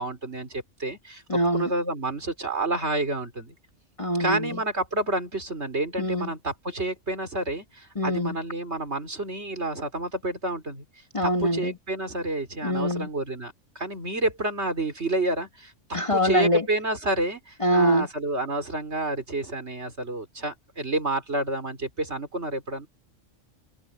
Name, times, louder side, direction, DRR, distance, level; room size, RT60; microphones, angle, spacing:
voice 1, 0.0-3.6 4.2-10.8 11.2-22.9, right 2 dB, 55° right, 4.5 m, -29 dB
voice 2, 1.3-1.7 4.0-4.5 6.0-6.3 8.0-8.4 11.1-11.7 12.6-13.1 15.9-16.6 17.6-18.1, equal, 25° left, 1.4 m, -23 dB
omnidirectional pair, 1.3 m